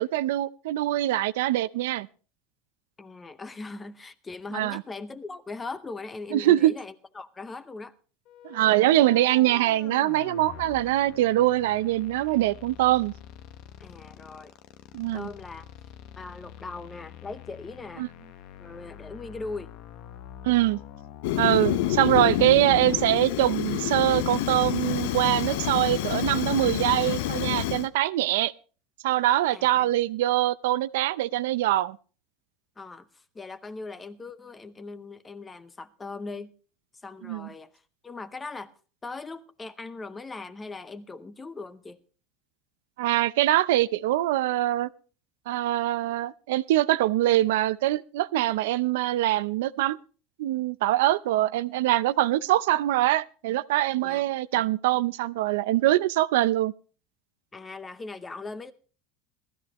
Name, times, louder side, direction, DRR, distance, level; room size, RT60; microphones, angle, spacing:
voice 1, 0.0-2.1 4.5-4.8 6.3-6.7 8.4-13.1 14.9-15.3 18.0-18.1 20.4-20.8 21.4-28.5 29.0-32.0 37.2-37.5 43.0-44.9 45.5-50.0 50.4-56.7, right 15 dB, 85° right, 0.5 m, -23 dB
voice 2, 3.0-8.0 13.8-14.5 15.1-15.6 16.2-18.0 18.6-19.7 29.5-29.9 32.8-36.5 37.0-38.7 39.0-42.0 54.0-54.2 57.5-58.7, left 3 dB, 15° left, 0.7 m, -40 dB
sound 1, 8.2-22.1, left 10 dB, 50° left, 1.0 m, -46 dB
Fire, 21.2-27.9, left 13 dB, 75° left, 0.9 m, -28 dB
19.0 x 13.5 x 3.0 m
supercardioid pair, 155°, 0 cm